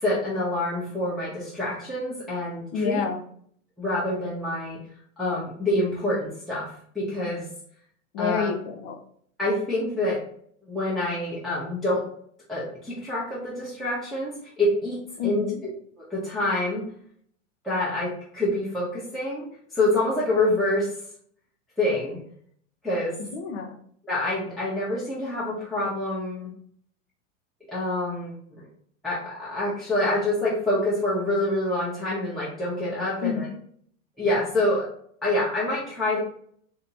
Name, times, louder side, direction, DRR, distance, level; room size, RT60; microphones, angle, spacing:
voice 1, 0.0-3.0 3.8-4.8 5.2-7.4 8.2-8.5 9.4-10.2 10.7-12.0 12.5-15.4 16.1-16.9 17.6-19.5 19.7-20.9 21.8-22.2 22.8-23.2 24.0-26.5 27.7-28.6 29.0-33.5 34.2-34.9 35.2-36.2, left 1 dB, ahead, -8 dB, 0.9 m, -26 dB
voice 2, 2.7-3.2 8.1-9.0 15.2-15.6 23.2-23.8 33.2-33.6, left 6 dB, 50° left, 5 dB, 0.7 m, -28 dB
3.5 x 2.8 x 2.8 m, 0.62 s
hypercardioid pair, 100°, 40 cm